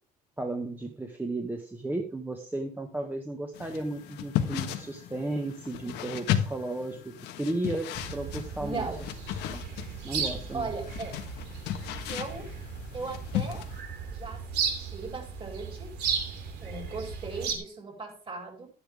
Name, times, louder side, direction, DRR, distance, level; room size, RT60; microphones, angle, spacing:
voice 1, 0.4-8.9 9.5-9.6 10.0-10.7, right 2 dB, 10° right, 3 dB, 1.5 m, -34 dB
sound 1, 3.5-13.8, left 10 dB, 85° left, 1.5 m, -35 dB
Morning Birdsong Spain, 7.9-17.6, right 6 dB, 80° right, 3.1 m, -36 dB
voice 2, 8.6-9.1 10.5-11.1 12.1-12.5 12.9-13.6 14.1-15.9 16.6-18.7, right 3 dB, 35° right, 2 dB, 5.0 m, -38 dB
12.0 x 10.0 x 3.6 m, 0.39 s
cardioid pair, 110°, 17 cm